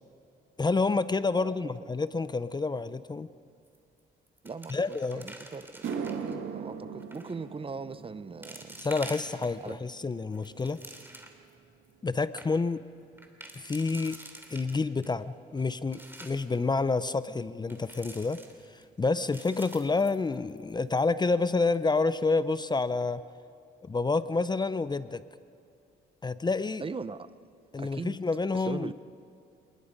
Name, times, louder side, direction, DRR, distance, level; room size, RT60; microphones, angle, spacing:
voice 1, 0.6-3.3 4.7-5.3 8.8-10.8 12.0-12.8 13.6-14.2 14.5-18.4 19.0-23.2 23.8-25.2 26.2-26.8 27.7-28.9, left 3 dB, 20° left, 15 dB, 0.6 m, -28 dB
voice 2, 1.3-1.7 4.4-5.9 6.2-8.7 9.6-9.8 26.8-27.3 27.8-28.2 28.5-28.9, right 4 dB, 25° right, 15 dB, 0.7 m, -40 dB
sound 1, 3.7-4.0 4.3-6.3 7.0-7.4 7.9-8.0 8.4-9.7 10.2-11.5 11.9-12.0 12.2-12.5 13.2-15.1 15.6-16.5 17.7-18.8 19.2-20.7 21.0-21.1 21.6-21.8, right 1 dB, 10° right, 3.0 m, -47 dB
sound 2, 5.1-5.2 5.6-14.1 14.4-14.9 15.6-15.7 18.5-18.6 20.2-20.3 20.5-20.7 21.0-21.5 22.0-22.1 22.6-22.7, right 6 dB, 85° right, 2.0 m, -42 dB
27.0 x 20.5 x 5.3 m, 2.6 s
cardioid pair, 90°, 20 cm